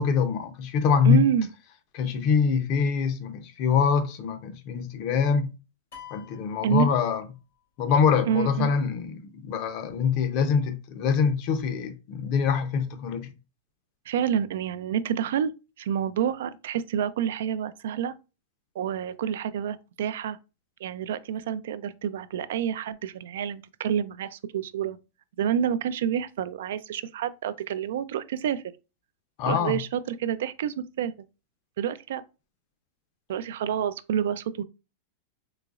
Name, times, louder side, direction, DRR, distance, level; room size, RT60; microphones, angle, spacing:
voice 1, 0.0-1.2 1.9-5.5 6.1-7.2 7.8-13.3 29.4-29.8, left 6 dB, 45° left, 0.6 m, -24 dB
voice 2, 1.1-1.5 6.6-6.9 8.3-8.7 14.1-15.5 15.8-18.1 18.8-20.4 20.8-25.0 25.4-28.6 29.5-31.1 31.8-32.2 33.3-34.6, right 9 dB, 75° right, 0.3 m, -28 dB
sound 1, 5.9-7.6, left 9 dB, 85° left, 1.4 m, -48 dB
3.9 x 2.9 x 2.4 m
supercardioid pair, 155°, 0 cm